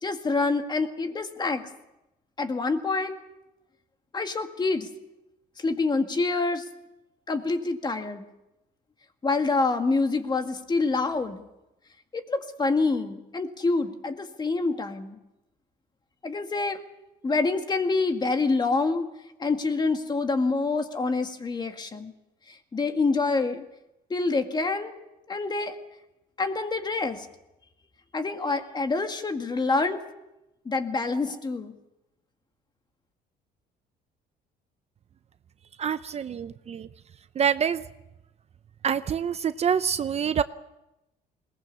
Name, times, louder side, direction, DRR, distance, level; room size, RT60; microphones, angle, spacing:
voice 1, 0.0-1.7 2.4-3.2 4.1-4.9 5.6-6.7 7.3-8.3 9.2-11.4 12.1-15.2 16.2-16.8 17.2-19.1 19.4-22.1 22.5-23.7 24.1-24.9 25.3-25.8 26.4-27.3 28.1-30.0 30.7-31.8, left 3 dB, 25° left, 6 dB, 2.0 m, -26 dB
voice 2, 35.8-36.9 37.4-37.8 38.8-40.4, right 8 dB, 40° right, 13 dB, 0.7 m, -26 dB
21.0 x 19.0 x 7.2 m, 0.93 s
cardioid pair, 110°, 17 cm